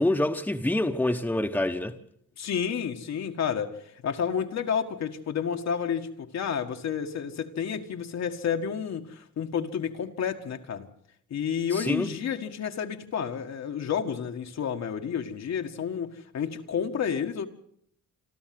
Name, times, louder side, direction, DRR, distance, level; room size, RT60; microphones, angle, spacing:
voice 1, 0.0-2.0 11.7-12.1, left 1 dB, 5° left, 1.3 m, -26 dB
voice 2, 2.4-10.9 11.3-17.5, left 7 dB, 60° left, 1.7 m, -30 dB
27.0 x 13.0 x 7.8 m
cardioid pair, 90°, 30 cm